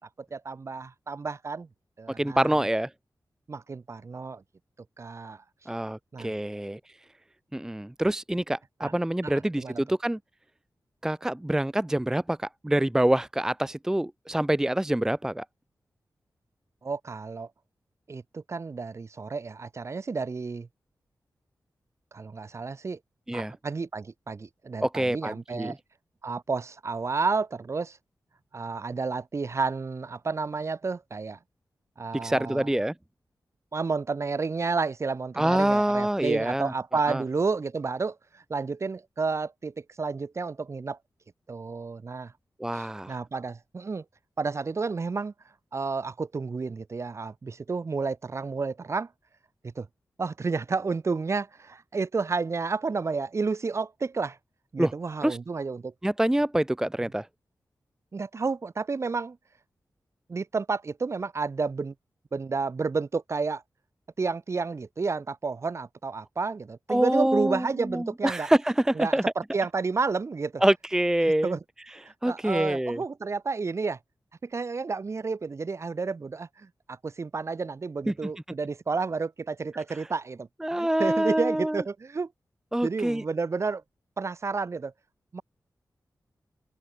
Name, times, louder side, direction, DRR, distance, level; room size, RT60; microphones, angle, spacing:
voice 1, 0.3-1.7 2.0-2.6 3.5-4.4 5.0-5.4 6.1-6.3 8.8-8.9 9.2-9.8 16.8-17.5 18.1-20.7 22.1-23.0 23.3-25.8 26.2-28.0 28.5-31.4 32.0-32.7 33.7-41.0 41.5-42.3 42.7-44.0 44.4-45.3 45.7-49.1 49.6-49.9 50.2-54.4 54.7-55.9 58.1-59.4 60.3-61.9 62.3-63.6 64.2-68.5 69.0-69.2 69.5-70.6 71.4-71.6 72.3-74.0 74.4-82.3 82.8-83.8 84.2-84.9 85.3-85.4, right 4 dB, 45° right, 1.8 m, -31 dB
voice 2, 2.2-2.9 5.7-6.8 7.5-10.2 11.0-15.4 23.3-23.5 24.8-25.7 32.2-32.9 35.4-36.7 37.1-37.2 42.6-43.1 54.8-54.9 55.2-55.4 56.0-57.3 66.9-69.2 70.6-71.6 72.2-73.0 78.1-78.3 80.0-80.1 80.6-81.8 82.7-83.2, right 1 dB, 10° right, 0.6 m, -26 dB
open air
wide cardioid pair, 145°, 7 cm